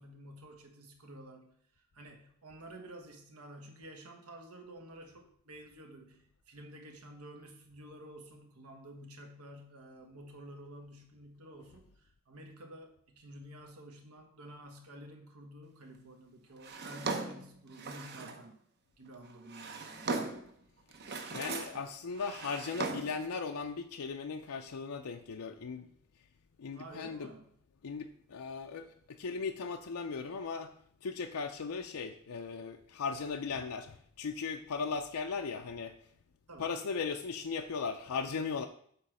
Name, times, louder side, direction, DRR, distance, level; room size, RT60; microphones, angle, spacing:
voice 1, 0.0-18.6 19.0-20.3 26.7-27.5 36.5-36.7, right 1 dB, 80° right, 3 dB, 1.2 m, -51 dB
Drawer open or close, 16.6-18.5 19.3-20.5 20.9-21.8 22.1-23.3, right 3 dB, 50° right, 0.8 m, -38 dB
voice 2, 21.3-25.9 26.6-27.3 27.8-30.7 31.0-36.0 36.6-38.7, left 5 dB, 75° left, 5 dB, 0.5 m, -37 dB
8.3 x 3.1 x 6.3 m, 0.63 s
head